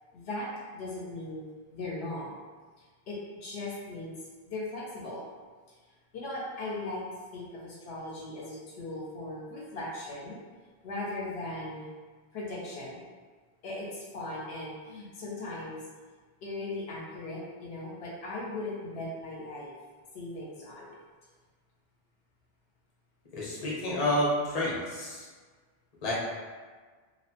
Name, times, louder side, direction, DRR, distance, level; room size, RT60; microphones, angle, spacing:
voice 1, 0.1-1.4 1.7-2.3 3.1-4.2 4.5-5.2 6.1-7.0 7.3-10.4 10.8-11.9 12.3-13.0 13.6-15.8 16.4-19.7 20.1-21.0, left 2 dB, 75° left, -4 dB, 0.8 m, -38 dB
voice 2, 23.3-25.3 26.0-26.1, left 1 dB, 40° left, -5 dB, 0.7 m, -29 dB
2.8 x 2.0 x 2.8 m, 1.5 s
omnidirectional pair, 1.1 m